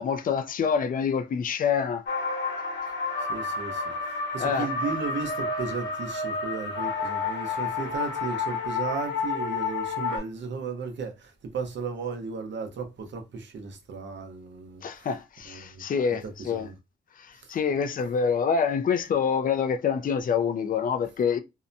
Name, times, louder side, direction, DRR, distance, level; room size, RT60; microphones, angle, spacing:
voice 1, 0.0-2.0 4.4-4.7 14.8-16.7 17.2-21.4, left 6 dB, 45° left, 0.4 m, -26 dB
sound 1, 2.1-10.2, left 4 dB, 75° left, 1.0 m, -30 dB
voice 2, 3.2-15.1 15.4-15.8 16.1-16.7, right 5 dB, 75° right, 0.8 m, -35 dB
2.7 x 2.1 x 2.6 m
cardioid pair, 85°, 19 cm